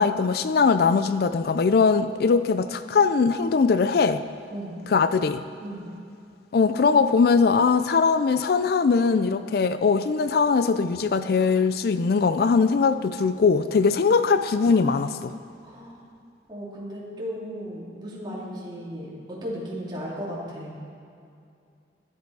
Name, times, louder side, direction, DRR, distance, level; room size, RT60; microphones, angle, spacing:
voice 1, 0.0-4.2 4.9-5.4 6.5-15.3, left 5 dB, 60° left, 11 dB, 0.4 m, -21 dB
voice 2, 15.6-16.0 16.5-20.7, equal, 25° right, -6 dB, 2.9 m, -35 dB
13.5 x 11.0 x 4.8 m, 2.4 s
head